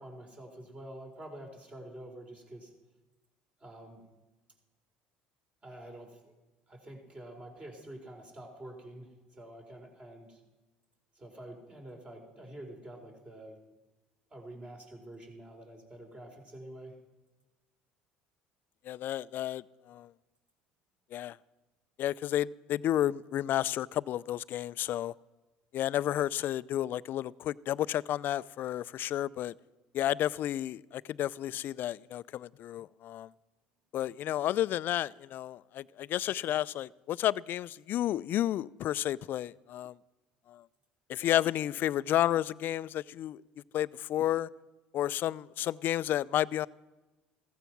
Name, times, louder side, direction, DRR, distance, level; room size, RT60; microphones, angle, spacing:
voice 1, 0.0-2.7 3.6-4.0 5.6-6.3 6.7-10.4 11.2-13.6 14.3-16.9, right 1 dB, 30° right, 4.3 m, -47 dB
voice 2, 18.9-20.1 21.1-21.4 22.0-25.1 25.7-29.5 29.9-33.3 33.9-39.9 40.5-40.6 41.1-43.4 43.7-44.5 44.9-46.7, left 12 dB, 55° left, 0.4 m, -31 dB
15.0 x 14.5 x 6.0 m
hypercardioid pair, 80°, 4 cm